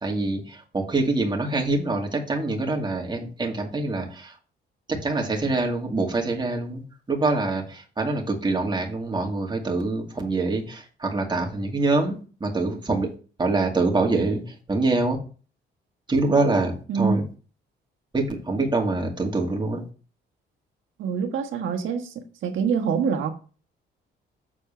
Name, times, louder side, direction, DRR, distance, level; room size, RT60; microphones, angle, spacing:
voice 1, 0.0-4.3 4.9-6.8 7.1-12.2 12.4-13.1 13.4-14.4 14.7-15.2 16.1-17.2 18.1-19.8, right 3 dB, 20° right, 2.3 m, -25 dB
voice 2, 21.0-22.1 22.4-23.3, right 6 dB, 75° right, 1.5 m, -25 dB
7.3 x 4.5 x 5.6 m
cardioid pair, 90°, 20 cm